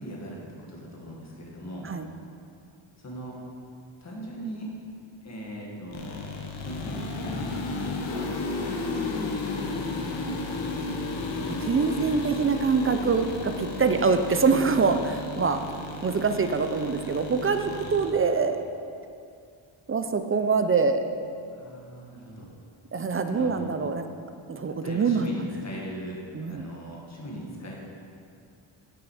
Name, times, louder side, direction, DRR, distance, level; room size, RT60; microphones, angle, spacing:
voice 1, 0.0-1.9 3.0-3.4 4.0-4.7 5.2-6.2 6.6-10.3 11.8-12.1 17.6-17.8 21.5-22.5 23.3-23.7 24.6-26.2 26.5-27.8, right 1 dB, 35° left, -2 dB, 1.8 m, -40 dB
sound 1, 5.9-18.1, left 2 dB, 65° left, 1.2 m, -33 dB
voice 2, 11.5-15.6 16.0-18.6 19.9-21.0 22.9-24.1 24.5-25.3 26.3-26.6, right 4 dB, 30° right, 8 dB, 0.4 m, -24 dB
8.6 x 7.7 x 4.8 m, 2.4 s
wide cardioid pair, 140°, 48 cm